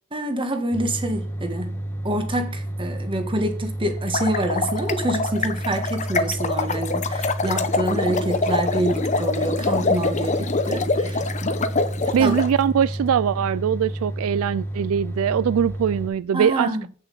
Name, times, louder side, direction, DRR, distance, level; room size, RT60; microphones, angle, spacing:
voice 1, 0.1-11.2 12.1-12.3 16.3-16.9, right 1 dB, 25° right, 1.4 m, -27 dB
sound 1, 0.7-16.1, right 1 dB, 10° left, 1.2 m, -31 dB
sound 2, 4.0-12.5, left 3 dB, 35° left, 0.8 m, -25 dB
voice 2, 12.1-16.7, right 8 dB, 70° right, 0.3 m, -21 dB
8.2 x 7.0 x 5.5 m
head